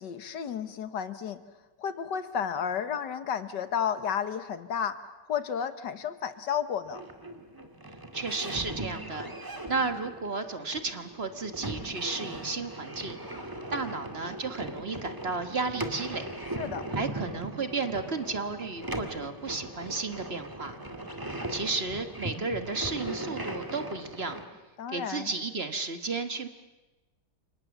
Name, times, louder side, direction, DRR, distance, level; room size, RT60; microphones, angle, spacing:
voice 1, 0.0-1.4 1.8-5.0 5.3-7.0 16.5-16.9 24.8-25.3, left 8 dB, 85° left, 11 dB, 1.9 m, -32 dB
sound 1, 6.9-24.5, right 1 dB, 10° right, 2.1 m, -39 dB
voice 2, 8.1-9.3 9.7-13.2 13.7-16.2 16.9-20.7 21.5-24.4 24.9-26.5, right 4 dB, 40° right, 8 dB, 1.5 m, -33 dB
29.5 x 26.0 x 7.1 m, 1.1 s
omnidirectional pair, 1.8 m